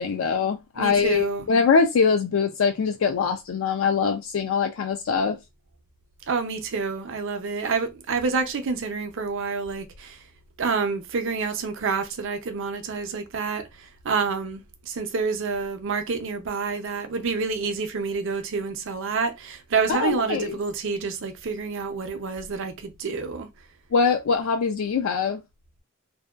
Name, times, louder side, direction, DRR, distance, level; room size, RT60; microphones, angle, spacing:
voice 1, 0.0-5.4 19.9-20.6 23.9-25.4, left 5 dB, 65° left, 0.3 m, -23 dB
voice 2, 0.8-1.5 6.3-10.2 10.6-23.5, right 4 dB, 60° right, 0.5 m, -28 dB
2.6 x 2.1 x 2.3 m
head